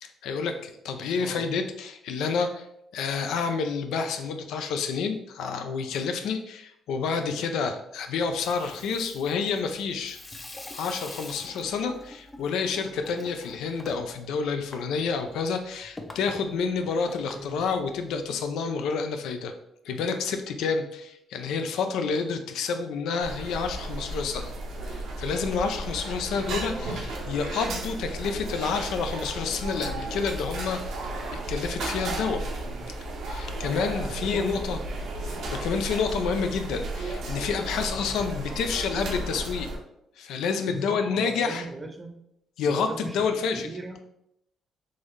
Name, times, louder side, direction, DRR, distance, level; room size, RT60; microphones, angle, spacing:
voice 1, 0.0-2.6 2.9-10.2 10.7-19.5 19.8-24.5 24.9-31.0 31.3-32.4 33.3-34.8 35.2-39.7 40.2-41.6 42.6-43.7, left 5 dB, 85° left, 7 dB, 0.4 m, -29 dB
Water tap faucet / Sink (filling or washing), 8.2-18.4, left 2 dB, 20° left, 0.5 m, -46 dB
sound 1, 23.2-39.8, right 2 dB, 80° right, 0.7 m, -34 dB
voice 2, 26.3-26.9 32.6-32.9 34.0-34.7 38.0-38.2 40.7-42.2 42.6-43.2 43.6-44.0, right 2 dB, 20° right, 4 dB, 0.6 m, -39 dB
3.7 x 2.6 x 3.1 m, 0.79 s
cardioid pair, 90°, 0 cm